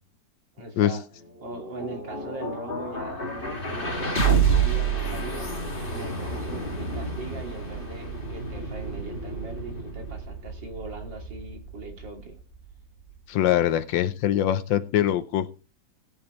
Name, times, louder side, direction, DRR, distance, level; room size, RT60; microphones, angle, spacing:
voice 1, 0.5-1.0 1.4-5.5 5.9-12.3, right 3 dB, 80° right, 3 dB, 3.0 m, -40 dB
sound 1, 1.2-13.2, right 5 dB, 30° left, 2.6 m, -29 dB
voice 2, 13.3-15.5, left 11 dB, 90° left, 11 dB, 1.5 m, -23 dB
20.0 x 7.9 x 3.1 m, 0.33 s
omnidirectional pair, 2.0 m